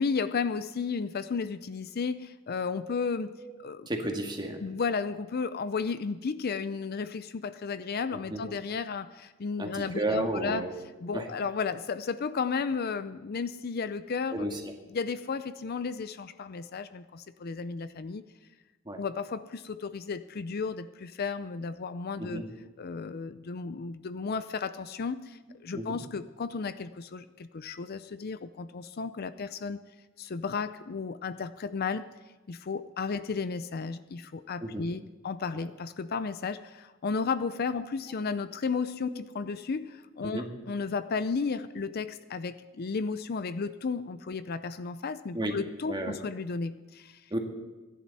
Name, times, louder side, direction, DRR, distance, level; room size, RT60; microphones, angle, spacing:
voice 1, 0.0-3.3 3.6-3.9 4.6-10.6 11.0-14.5 14.9-18.2 19.0-22.4 22.8-29.8 30.2-32.0 32.5-47.2, left 5 dB, 50° left, 13 dB, 0.5 m, -33 dB
voice 2, 3.9-4.6 8.1-8.4 9.6-10.7 11.1-11.3 14.3-14.6 18.9-19.0 22.2-22.4 25.8-26.0 34.6-34.9 39.1-39.2 40.2-40.4 45.3-45.5 45.9-46.2 47.3-47.4, right 1 dB, 20° right, 2 dB, 1.9 m, -32 dB
23.0 x 11.0 x 4.2 m, 1.2 s
head